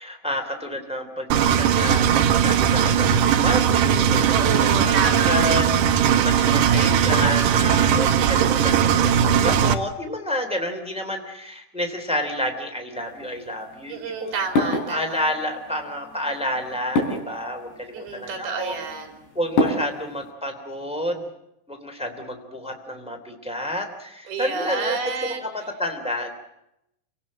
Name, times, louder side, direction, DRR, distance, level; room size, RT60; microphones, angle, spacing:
voice 1, 0.0-18.8 19.3-21.3 21.7-25.0 25.4-26.3, left 1 dB, ahead, 5 dB, 2.0 m, -30 dB
Engine, 1.3-9.7, right 8 dB, 80° right, 1.9 m, -19 dB
voice 2, 4.3-5.6 6.4-7.2 13.9-15.3 17.9-19.1 24.3-25.7, right 5 dB, 55° right, 5 dB, 5.4 m, -30 dB
sound 1, 13.0-20.3, left 1 dB, 60° left, 6.0 m, -30 dB
29.0 x 18.0 x 7.6 m, 0.82 s
omnidirectional pair, 5.5 m